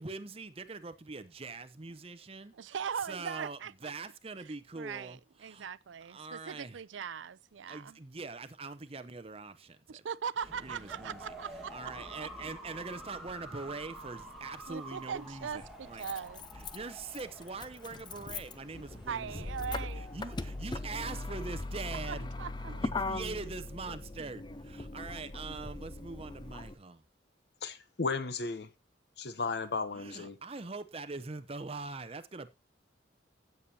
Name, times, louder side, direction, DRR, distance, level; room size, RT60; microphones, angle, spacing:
voice 1, 0.0-2.5 3.1-5.7 6.1-6.8 7.7-10.0 10.6-11.3 11.7-16.2 16.5-19.3 19.7-22.3 22.6-27.0 29.9-32.5, right 3 dB, 30° right, 0.8 m, -43 dB
voice 2, 2.5-3.9 4.8-8.0 9.9-12.5 14.7-16.5 19.1-20.1 22.1-22.8, right 7 dB, 90° right, 0.5 m, -40 dB
sound 1, 10.4-21.3, right 1 dB, ahead, 2.0 m, -49 dB
Motor vehicle (road), 14.4-14.5 15.6-26.7, left 2 dB, 25° left, 0.6 m, -40 dB
voice 3, 27.6-28.7 29.2-30.3, left 4 dB, 60° left, 0.8 m, -34 dB
15.5 x 7.0 x 2.8 m
head